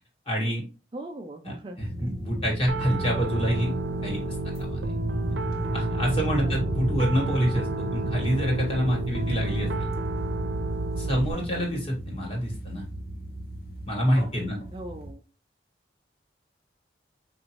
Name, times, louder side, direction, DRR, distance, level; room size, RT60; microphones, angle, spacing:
voice 1, 0.3-0.6 1.4-3.7 4.0-4.8 5.7-9.9 11.0-12.8 13.8-14.6, equal, 30° left, -1 dB, 1.5 m, -27 dB
voice 2, 0.9-2.1 6.4-6.7 11.3-11.7 14.7-15.2, right 1 dB, 25° right, 3 dB, 0.4 m, -40 dB
sound 1, 1.8-15.1, right 1 dB, 55° left, 1.0 m, -35 dB
Piano, 2.7-11.3, right 2 dB, 85° right, 0.7 m, -31 dB
5.0 x 2.6 x 2.9 m, 0.33 s
head